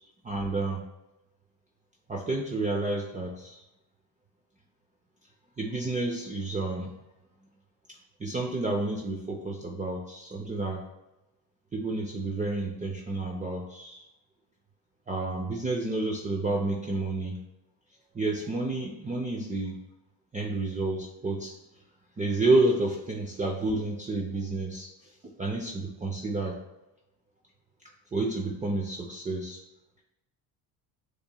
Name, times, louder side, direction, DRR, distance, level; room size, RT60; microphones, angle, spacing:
voice 1, 0.2-0.8 2.1-3.6 5.6-6.9 8.2-10.8 11.7-14.1 15.1-17.4 18.1-19.8 20.3-21.5 22.2-26.6 28.1-29.6, right 2 dB, 15° right, 0 dB, 0.5 m, -30 dB
6.6 x 3.1 x 2.2 m, 0.94 s
supercardioid pair, 85°, 47 cm